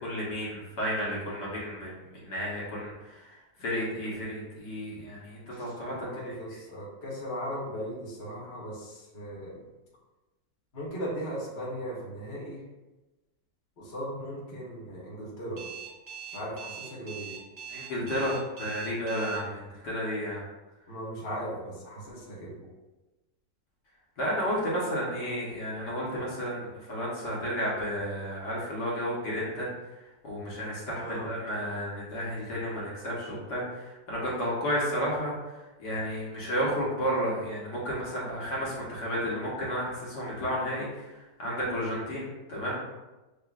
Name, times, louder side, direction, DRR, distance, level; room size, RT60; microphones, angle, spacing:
voice 1, 0.0-2.0 2.2-3.3 3.6-5.9 6.2-6.4 17.7-20.4 24.2-29.7 30.2-35.3 35.8-41.1 41.4-42.8, equal, 70° left, -6 dB, 1.7 m, -32 dB
voice 2, 5.5-9.6 10.7-12.6 13.8-15.6 16.3-17.4 20.9-22.7 31.0-31.3 41.7-41.9, equal, 40° left, -6 dB, 1.3 m, -38 dB
Alarm, 15.6-19.4, right 8 dB, 45° right, 0.7 m, -41 dB
6.6 x 2.5 x 2.4 m, 1.1 s
omnidirectional pair, 1.9 m